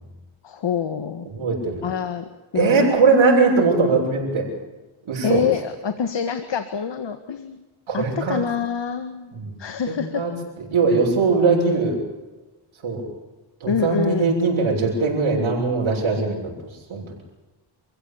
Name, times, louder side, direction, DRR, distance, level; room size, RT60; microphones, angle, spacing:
voice 1, 0.4-1.3 1.8-2.3 2.5-3.0 5.2-7.6 7.9-10.2 13.7-14.3, left 7 dB, 60° left, 9 dB, 1.8 m, -26 dB
voice 2, 1.3-1.8 2.5-4.5 5.1-5.5 7.9-8.4 9.3-9.5 9.9-10.3 10.6-12.0 12.8-13.0 13.6-16.4 16.9-17.0, right 4 dB, 75° right, -3 dB, 7.1 m, -20 dB
28.0 x 16.0 x 8.7 m, 1.2 s
cardioid pair, 100°, 49 cm